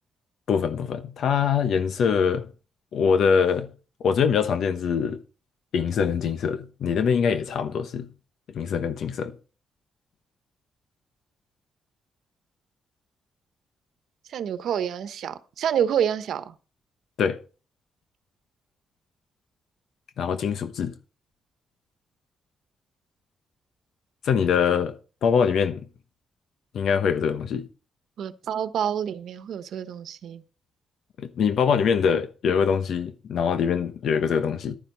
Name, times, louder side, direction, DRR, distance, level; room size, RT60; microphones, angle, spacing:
voice 1, 0.5-2.5 2.9-3.7 4.0-5.2 5.7-8.1 8.5-9.3 17.2-17.4 20.2-20.9 24.2-24.9 25.2-25.8 26.7-27.7 31.2-34.8, left 6 dB, 75° left, 1.0 m, -23 dB
voice 2, 14.3-16.5 28.2-30.4, right 9 dB, 75° right, 1.1 m, -28 dB
11.5 x 10.5 x 4.0 m
cardioid pair, 105°, 0 cm